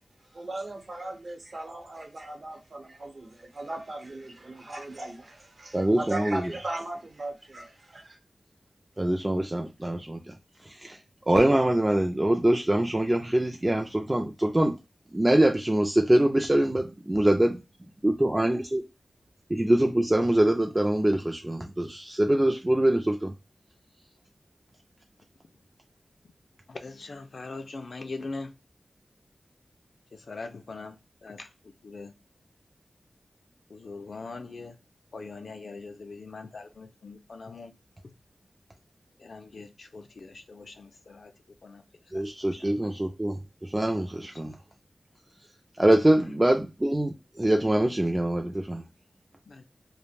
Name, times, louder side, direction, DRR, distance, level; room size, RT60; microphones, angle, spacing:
voice 1, 0.3-8.2, right 2 dB, 50° right, 0.9 m, -38 dB
voice 2, 5.7-6.5 9.0-10.3 10.6-11.0 11.3-14.8 15.1-17.6 18.0-18.8 19.5-23.3 42.1-44.6 45.8-48.8, right 1 dB, 20° right, 0.3 m, -24 dB
voice 3, 26.7-28.5 30.3-31.0 31.2-31.5 31.8-32.1 33.7-34.7 35.1-37.7 38.0-38.1 39.2-41.3 41.6-41.8 49.5-49.6, left 3 dB, 65° left, 0.4 m, -41 dB
2.3 x 2.1 x 3.2 m
wide cardioid pair, 80°, 0 cm